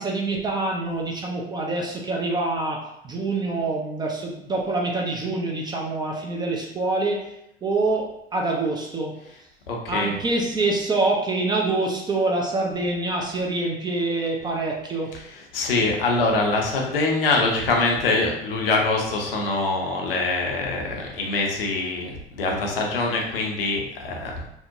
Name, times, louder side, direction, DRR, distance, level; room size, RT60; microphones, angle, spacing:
voice 1, 0.0-7.3 7.6-9.1 9.9-15.1, right 2 dB, 15° right, -1 dB, 0.4 m, -25 dB
voice 2, 9.7-10.1 15.3-24.4, left 3 dB, 70° left, 0 dB, 0.6 m, -24 dB
2.6 x 2.0 x 2.6 m, 0.79 s
figure-of-eight pair, 70°, 29 cm